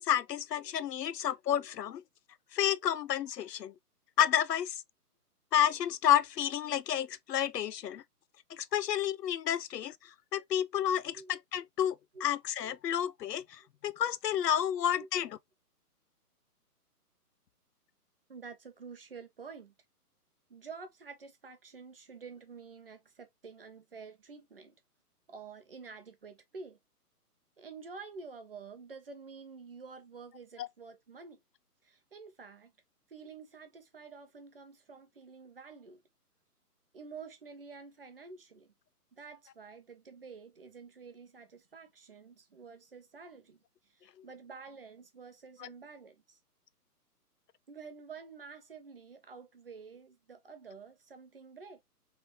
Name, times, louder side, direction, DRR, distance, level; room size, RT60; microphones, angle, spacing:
voice 1, 0.0-2.0 2.5-3.7 4.2-4.8 5.5-8.0 8.5-10.0 10.3-12.0 12.2-15.4 30.6-30.7 45.6-45.7, left 10 dB, 90° left, 0.6 m, -30 dB
voice 2, 18.3-19.7 20.5-24.7 25.3-26.8 27.6-31.4 31.8-32.7 33.1-36.0 36.9-38.7 39.1-43.6 43.9-46.4 47.7-51.8, right 5 dB, 35° right, 0.6 m, -49 dB
3.4 x 2.8 x 3.1 m
hypercardioid pair, 165°, 47 cm